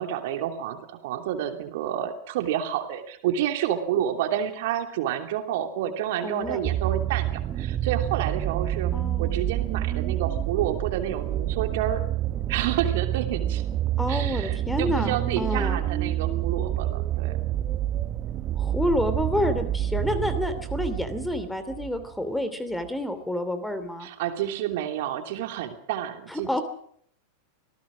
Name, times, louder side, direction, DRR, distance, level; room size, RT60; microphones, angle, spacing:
voice 1, 0.0-12.0 12.5-13.6 14.1-17.4 24.0-26.6, right 10 dB, 50° right, 6 dB, 2.9 m, -29 dB
voice 2, 6.2-6.6 8.9-9.4 14.0-15.8 18.6-24.1 26.3-26.6, left 1 dB, 5° left, 11 dB, 2.8 m, -29 dB
sound 1, 6.4-22.0 22.8-22.9, right 13 dB, 30° right, 1.2 m, -28 dB
26.5 x 19.0 x 6.3 m, 0.64 s
figure-of-eight pair, 90°, 0 cm